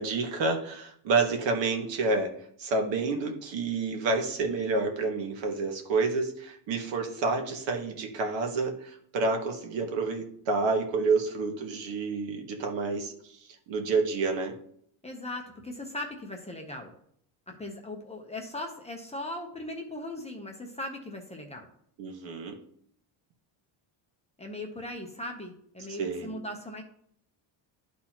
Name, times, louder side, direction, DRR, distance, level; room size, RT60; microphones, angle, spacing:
voice 1, 0.0-2.3 2.6-13.3 13.7-14.5 22.0-22.6 25.9-26.3, right 3 dB, 65° right, 3 dB, 1.6 m, -29 dB
voice 2, 15.0-16.9 17.5-21.7 24.4-26.8, left 1 dB, 15° left, 1 dB, 0.8 m, -39 dB
12.0 x 4.1 x 3.0 m, 0.67 s
cardioid pair, 150°, 49 cm